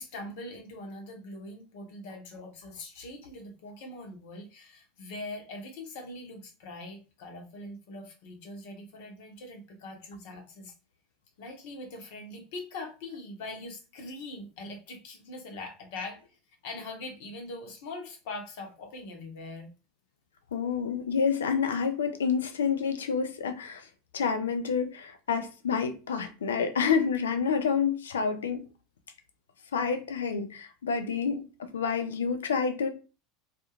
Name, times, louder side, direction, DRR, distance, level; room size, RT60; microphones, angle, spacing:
voice 1, 0.0-10.7 11.4-19.7, left 2 dB, 65° left, 0.9 m, -42 dB
voice 2, 20.5-23.9 24.1-28.6 29.7-32.9, left 6 dB, 85° left, 0.4 m, -28 dB
2.4 x 2.2 x 2.9 m
hypercardioid pair, 80°, 0 cm